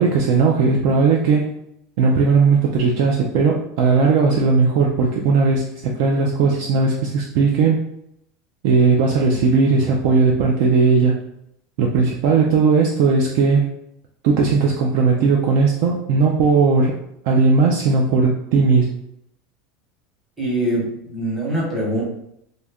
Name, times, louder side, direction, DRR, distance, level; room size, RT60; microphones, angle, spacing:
voice 1, 0.0-1.5 2.0-7.9 8.6-11.2 11.8-13.7 14.2-17.0 17.2-18.9, right 4 dB, 50° right, 0 dB, 0.3 m, -17 dB
voice 2, 20.4-22.0, right 1 dB, 10° right, -6 dB, 0.9 m, -23 dB
2.7 x 2.5 x 3.3 m, 0.77 s
supercardioid pair, 175°, 0 cm